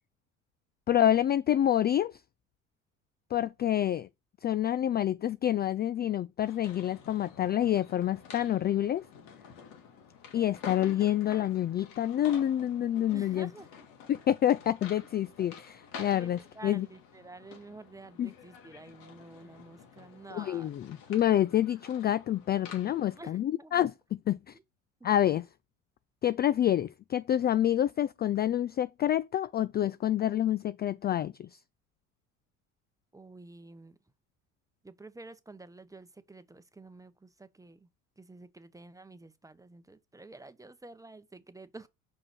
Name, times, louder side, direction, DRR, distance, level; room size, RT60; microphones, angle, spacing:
voice 1, 0.9-2.2 3.3-4.1 4.4-9.0 10.3-13.5 14.1-16.9 18.2-18.3 20.3-23.9 24.3-24.5 25.0-25.4 26.2-31.5, left 11 dB, 25° left, 0.4 m, -27 dB
sound 1, 6.4-23.2, left 6 dB, 65° left, 2.7 m, -49 dB
voice 2, 13.1-13.9 16.1-20.7 21.1-21.2 23.1-23.9 24.5-24.6 25.0-25.1 33.1-34.0 34.8-37.9 38.2-41.9, right 2 dB, 10° right, 1.0 m, -50 dB
5.9 x 5.0 x 6.2 m
hypercardioid pair, 70°, 39 cm